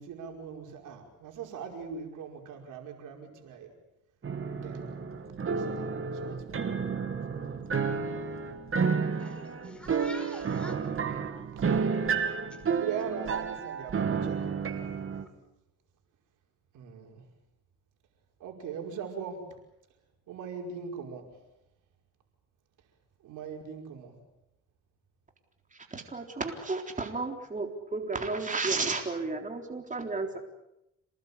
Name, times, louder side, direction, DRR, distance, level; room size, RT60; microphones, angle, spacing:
voice 1, 0.0-3.7 4.5-4.9 5.4-7.4 8.0-8.4 11.4-11.7 12.7-14.5 16.7-17.2 18.4-19.4 20.3-21.3 23.2-24.1, right 6 dB, 85° right, 3 dB, 5.4 m, -41 dB
sound 1, 4.2-15.2, right 5 dB, 45° right, 2.7 m, -31 dB
voice 2, 9.2-11.5, left 1 dB, 5° left, 6 dB, 5.5 m, -47 dB
voice 3, 25.7-30.4, right 3 dB, 25° right, 3 dB, 3.9 m, -33 dB
28.0 x 19.0 x 8.6 m, 0.86 s
cardioid pair, 90°, 30 cm